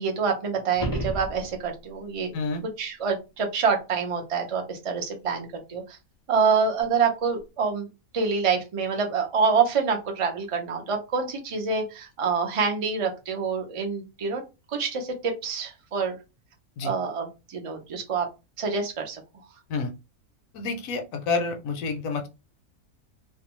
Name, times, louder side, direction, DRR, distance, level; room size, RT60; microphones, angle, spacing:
voice 1, 0.0-2.3 2.6-6.0 6.3-7.9 8.1-14.4 14.7-16.2 16.8-18.3 18.6-19.2, right 5 dB, 50° right, 3 dB, 0.3 m, -26 dB
sound 1, 0.7-1.9 6.8-6.9, right 1 dB, 35° left, 0.3 m, -32 dB
voice 2, 20.5-22.3, left 4 dB, 70° left, 4 dB, 0.9 m, -29 dB
2.6 x 2.2 x 2.9 m, 0.27 s
omnidirectional pair, 1.6 m